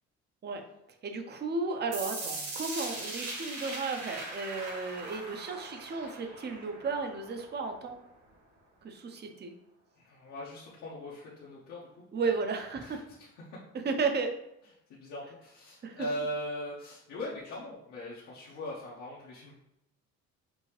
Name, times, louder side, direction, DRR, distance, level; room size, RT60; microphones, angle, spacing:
voice 1, 1.0-8.0 8.8-9.5 12.1-13.0 13.8-14.3 15.8-16.1, right 4 dB, 35° right, 5 dB, 0.7 m, -34 dB
sound 1, 1.9-7.9, right 2 dB, 60° right, 1.6 m, -40 dB
voice 2, 10.0-12.1 12.8-13.6 14.9-19.5, equal, 75° left, -6 dB, 1.0 m, -40 dB
5.3 x 2.7 x 3.2 m, 0.82 s
cardioid pair, 120°, 29 cm